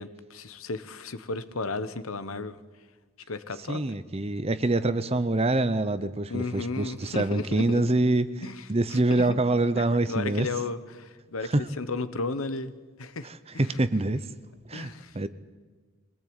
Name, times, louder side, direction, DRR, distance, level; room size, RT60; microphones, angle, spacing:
voice 1, 0.0-2.6 3.3-3.8 6.3-8.0 8.4-9.4 9.8-13.3 13.5-13.8 14.7-15.2, left 3 dB, 85° left, 13 dB, 1.2 m, -34 dB
voice 2, 3.7-8.3 8.7-10.5 11.5-11.6 13.6-14.2 14.7-14.9 15.1-15.3, right 2 dB, 30° right, 13 dB, 0.8 m, -25 dB
23.0 x 18.0 x 8.9 m, 1.4 s
head